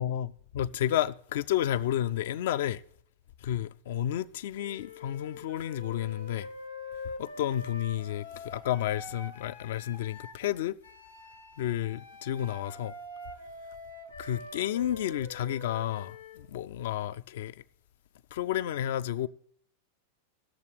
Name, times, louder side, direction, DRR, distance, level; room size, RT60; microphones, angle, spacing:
voice 1, 0.0-2.8 3.4-6.5 7.2-10.8 11.6-13.0 14.2-17.6 18.3-19.3, left 11 dB, 55° left, 0.3 m, -31 dB
Wind instrument woodwind instrument, 4.6-10.4 10.8-16.5, left 2 dB, 85° left, 1.6 m, -45 dB
18.0 x 6.9 x 3.2 m
figure-of-eight pair, 90°, 0 cm